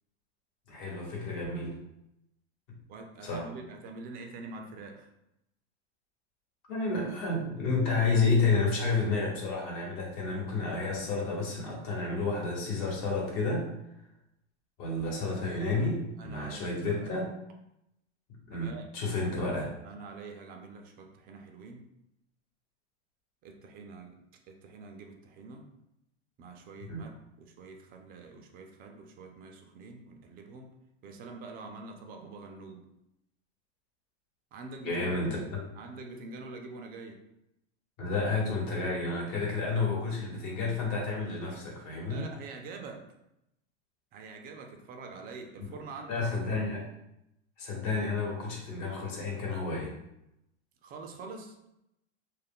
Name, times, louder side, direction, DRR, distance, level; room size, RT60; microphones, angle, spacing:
voice 1, 0.7-1.8 3.2-3.5 6.7-13.7 14.8-17.3 18.5-19.7 26.9-27.0 34.8-35.6 38.0-42.3 45.6-45.7 46.1-46.9 47.6-49.9, left 3 dB, 55° left, -2 dB, 1.1 m, -30 dB
voice 2, 2.9-5.1 16.2-17.1 18.5-18.9 19.2-19.5 19.8-21.9 23.4-24.2 24.5-25.6 26.4-27.1 27.4-30.7 31.0-32.8 34.5-37.2 42.1-43.1 44.1-46.4 50.8-51.5, right 3 dB, 25° right, 4 dB, 0.4 m, -45 dB
2.3 x 2.1 x 3.5 m, 0.84 s
supercardioid pair, 120°, 35 cm